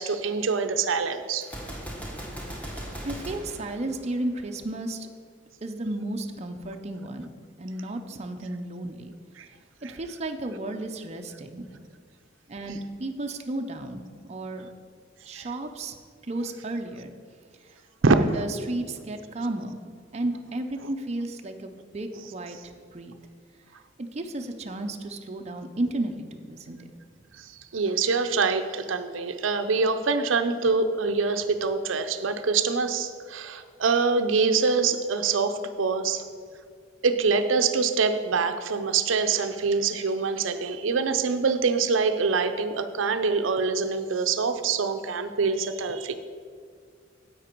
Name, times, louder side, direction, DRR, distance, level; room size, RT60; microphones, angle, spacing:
voice 1, 0.0-1.5 9.4-9.5 9.8-9.9 15.3-15.5 18.0-18.2 27.4-27.5 27.7-36.2 37.0-46.1, right 4 dB, 90° right, 8 dB, 0.6 m, -25 dB
Gunshot gunfire, 1.4-4.5, equal, 10° left, 1.4 m, -38 dB
voice 2, 3.0-5.1 5.6-7.3 7.6-9.1 9.8-11.7 12.5-14.7 15.3-15.9 16.2-17.1 17.7-17.8 18.0-19.8 20.1-23.1 24.0-26.9, right 2 dB, 35° right, 5 dB, 0.6 m, -33 dB
10.0 x 8.0 x 4.5 m, 2.1 s
head